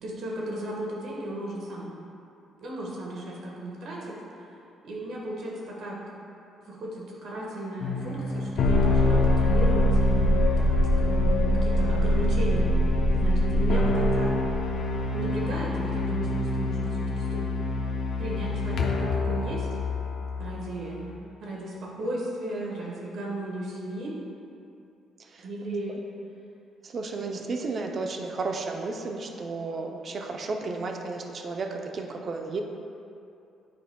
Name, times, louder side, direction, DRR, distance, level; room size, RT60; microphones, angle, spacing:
voice 1, 0.0-1.9 2.6-4.2 4.8-6.2 6.7-12.8 13.1-14.4 15.1-17.4 18.2-19.7 20.4-21.0 21.4-24.2 25.4-26.0, right 1 dB, 70° right, -3 dB, 1.4 m, -35 dB
sound 1, 7.8-21.1, left 1 dB, 65° left, 0.7 m, -24 dB
voice 2, 26.8-32.6, right 3 dB, 45° right, 3 dB, 0.6 m, -33 dB
9.1 x 4.9 x 2.3 m, 2.7 s
cardioid pair, 90°, 0 cm